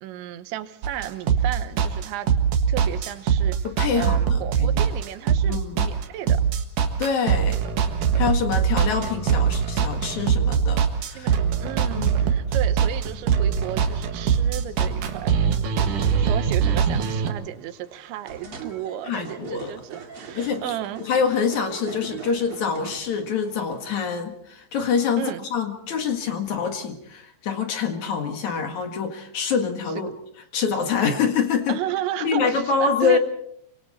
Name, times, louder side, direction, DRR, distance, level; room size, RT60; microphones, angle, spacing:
voice 1, 0.0-2.3 2.7-3.6 3.9-6.4 11.1-15.3 15.8-21.1 25.2-25.4 30.0-30.1 31.7-33.2, right 12 dB, 85° right, 11 dB, 3.4 m, -33 dB
sound 1, 0.8-17.3, right 7 dB, 60° right, 2.5 m, -22 dB
voice 2, 3.6-4.8 5.5-5.9 7.0-7.6 8.2-11.3 12.0-12.4 19.0-19.8 20.3-25.2 25.5-30.1 30.5-31.8 32.2-33.2, left 6 dB, 55° left, 5 dB, 2.5 m, -25 dB
sound 2, 17.2-24.1, right 5 dB, 40° right, 2.3 m, -42 dB
26.5 x 24.5 x 4.2 m, 0.71 s
omnidirectional pair, 5.2 m